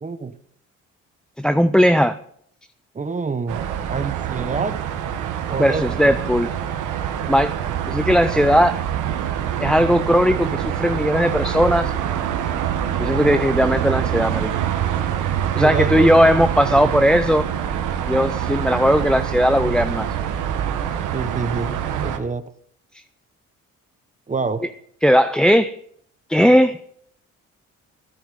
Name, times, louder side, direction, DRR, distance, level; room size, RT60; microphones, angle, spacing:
voice 1, 0.0-0.3 2.9-3.6 3.9-4.8 5.5-6.2 15.6-16.4 16.6-17.1 21.1-22.5 24.3-24.6, right 4 dB, 25° right, 12 dB, 1.0 m, -27 dB
voice 2, 1.4-2.2 5.6-6.5 7.3-7.6 7.9-8.8 9.6-11.9 13.0-14.6 15.5-17.5 18.1-20.1 22.9-23.0 25.0-25.8 26.3-26.8, equal, 5° left, 10 dB, 0.5 m, -17 dB
sound 1, 3.5-22.2, right 9 dB, 85° right, 1.4 m, -25 dB
13.5 x 10.0 x 5.3 m, 0.66 s
cardioid pair, 90°, 30 cm